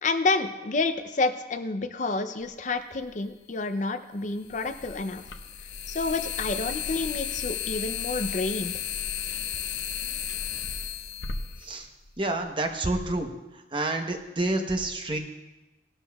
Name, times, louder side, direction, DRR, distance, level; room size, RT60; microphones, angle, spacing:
voice 1, 0.0-5.2 5.9-8.8, left 3 dB, 40° left, 9 dB, 0.5 m, -29 dB
sound 1, 3.0-3.1 4.5-12.4, left 7 dB, 75° left, 0.8 m, -34 dB
voice 2, 12.2-13.3 13.7-15.2, right 2 dB, 25° right, 4 dB, 0.9 m, -28 dB
18.5 x 12.5 x 2.3 m, 1.1 s
head